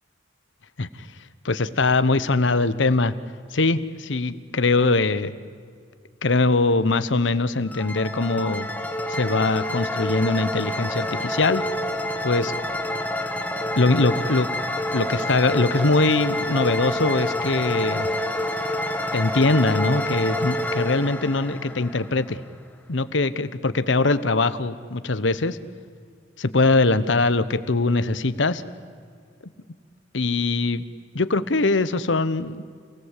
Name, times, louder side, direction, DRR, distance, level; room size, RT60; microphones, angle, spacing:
voice 1, 1.4-3.1 3.5-5.3 6.2-8.7 9.1-11.6 12.2-12.5 13.8-14.5 14.9-18.1 19.1-22.4 22.9-25.6 26.4-28.6 30.1-30.8 31.1-32.6, left 3 dB, 75° left, 14 dB, 1.0 m, -22 dB
sound 1, 7.7-22.5, left 1 dB, 10° left, 1.5 m, -28 dB
28.5 x 17.5 x 8.4 m, 2.1 s
head